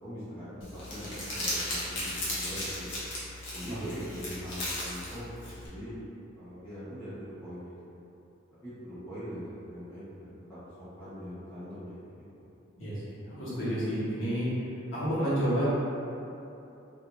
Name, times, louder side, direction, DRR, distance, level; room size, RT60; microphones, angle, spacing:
voice 1, 0.0-2.9 3.5-5.9 6.3-8.0 8.6-12.4, equal, 10° left, -15 dB, 1.2 m, -42 dB
Crumpling crinkling, 0.6-5.7, left 1 dB, 65° left, 0.8 m, -36 dB
voice 2, 12.8-14.5 14.9-15.6, equal, 80° left, -12 dB, 1.2 m, -30 dB
3.2 x 2.6 x 2.7 m, 2.8 s
head